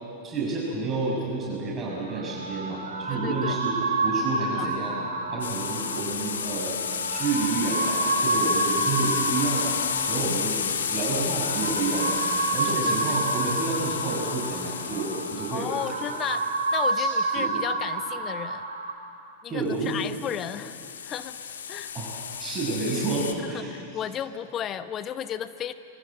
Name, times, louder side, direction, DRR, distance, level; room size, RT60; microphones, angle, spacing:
voice 1, 0.2-4.9 5.3-6.8 7.1-9.8 10.1-10.6 10.9-12.2 12.5-15.7 16.9-17.1 17.3-17.6 19.5-20.0 21.9-24.0, right 3 dB, 25° right, -4 dB, 6.4 m, -30 dB
sound 1, 1.9-18.9, right 3 dB, 70° right, 3.0 m, -29 dB
voice 2, 3.1-3.6 4.5-4.7 12.7-13.2 15.5-18.6 19.4-20.8 21.0-21.4 21.7-21.9 23.4-25.7, left 9 dB, 30° left, 12 dB, 0.9 m, -34 dB
sound 2, 5.4-16.9 19.8-23.3, left 7 dB, 65° left, 1.7 m, -31 dB
25.0 x 23.5 x 8.0 m, 2.7 s
figure-of-eight pair, 90°, 0 cm